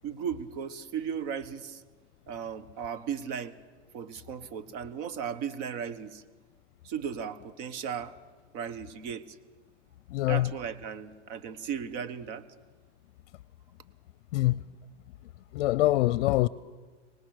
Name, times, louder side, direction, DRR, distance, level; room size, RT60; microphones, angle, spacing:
voice 1, 0.0-1.8 2.3-3.5 3.9-6.2 6.8-8.1 8.5-9.2 10.3-12.4, right 7 dB, 45° right, 1.3 m, -36 dB
voice 2, 10.1-10.5 14.3-14.6 15.5-16.5, left 17 dB, 65° left, 0.6 m, -24 dB
24.0 x 19.5 x 6.5 m
supercardioid pair, 140°, 35 cm